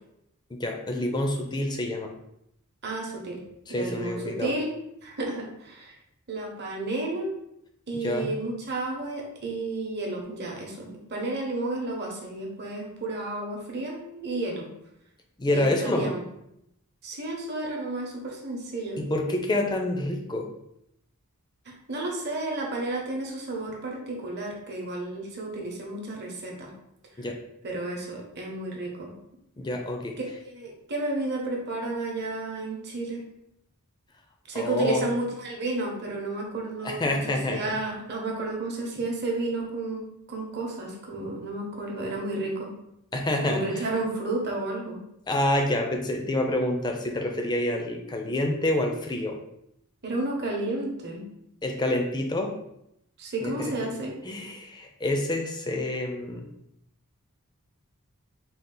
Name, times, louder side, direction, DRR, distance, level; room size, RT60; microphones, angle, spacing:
voice 1, 0.5-2.1 3.7-4.5 8.0-8.4 15.4-16.1 19.0-20.5 27.2-27.4 29.6-30.1 34.5-35.1 36.8-37.6 43.1-43.9 45.3-49.4 51.6-52.5 53.4-53.7 54.2-56.5, left 1 dB, 20° left, 3 dB, 0.4 m, -27 dB
voice 2, 2.8-3.4 3.7-4.7 5.0-5.9 6.3-7.3 7.9-14.7 15.5-16.2 17.0-19.0 21.6-26.7 27.6-29.2 30.5-33.3 34.5-40.0 40.3-42.7 43.5-45.0 50.0-51.2 53.2-54.1, right 2 dB, 50° right, -1 dB, 0.9 m, -32 dB
3.8 x 2.4 x 3.7 m, 0.80 s
head